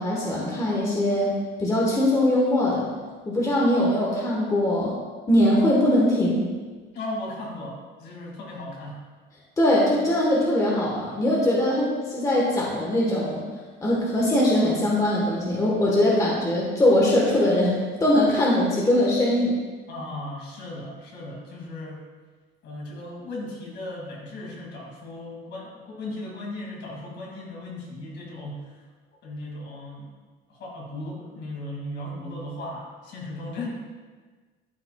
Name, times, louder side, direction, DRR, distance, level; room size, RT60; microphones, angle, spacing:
voice 1, 0.0-1.3 1.6-2.9 3.3-4.9 5.3-6.5 9.6-13.4 13.8-19.6, left 1 dB, 15° left, -4 dB, 1.1 m, -21 dB
voice 2, 6.9-9.0 19.9-22.0 22.6-28.8 29.2-30.1 30.5-33.8, left 1 dB, 60° left, -2 dB, 2.2 m, -36 dB
12.5 x 5.7 x 2.2 m, 1.4 s
cardioid pair, 160°, 20 cm